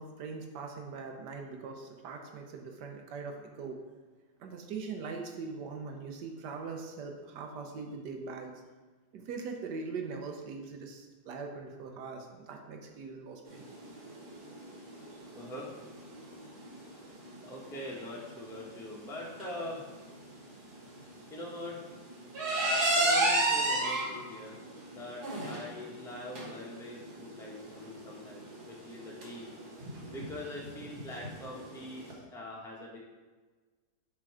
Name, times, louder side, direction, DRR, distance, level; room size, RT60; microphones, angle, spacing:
voice 1, 0.0-3.8 4.4-8.6 9.1-13.7, right 4 dB, 85° right, 3 dB, 1.4 m, -41 dB
sound 1, 13.5-32.1, right 1 dB, 70° right, 2.0 m, -34 dB
voice 2, 15.3-15.7 17.4-19.8 21.3-21.8 22.9-24.6 24.9-29.5 30.1-33.0, left 1 dB, ahead, -3 dB, 0.9 m, -43 dB
7.6 x 3.8 x 4.8 m, 1.3 s
omnidirectional pair, 1.8 m